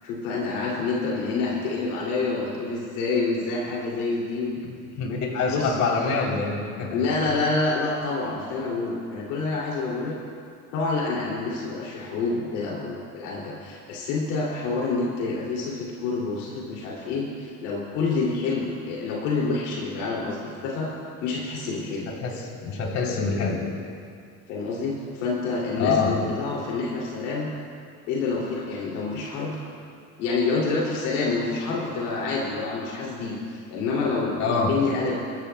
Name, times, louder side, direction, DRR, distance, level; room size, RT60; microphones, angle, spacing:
voice 1, 0.0-4.5 5.5-5.7 6.9-10.2 10.7-20.9 21.2-22.1 24.5-27.5 28.1-29.6 30.2-35.1, left 3 dB, 90° left, -4 dB, 2.7 m, -27 dB
voice 2, 4.6-7.0 22.2-23.7 25.8-26.2 34.4-34.7, left 4 dB, 55° left, -2 dB, 3.4 m, -26 dB
23.0 x 13.5 x 2.3 m, 2.3 s
supercardioid pair, 100°, 35 cm